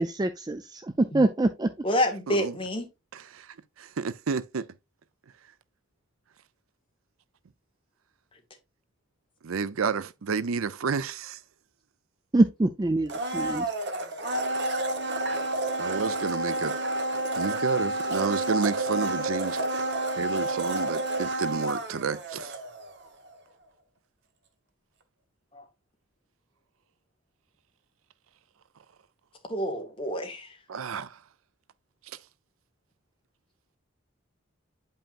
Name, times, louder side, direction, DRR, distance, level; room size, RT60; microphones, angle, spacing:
voice 1, 0.0-1.7 12.3-13.7, right 2 dB, 20° right, 0.4 m, -24 dB
voice 2, 1.8-2.9 25.5-25.6 29.5-30.6, equal, 25° left, 1.5 m, -28 dB
voice 3, 3.8-4.7 9.4-11.4 15.8-16.7 17.4-19.6 20.2-22.5 30.7-31.1, right 5 dB, 85° right, 0.5 m, -30 dB
Domestic sounds home sounds, 13.1-23.0 23.3-23.4, right 1 dB, 55° right, 1.2 m, -30 dB
8.6 x 5.5 x 2.5 m
head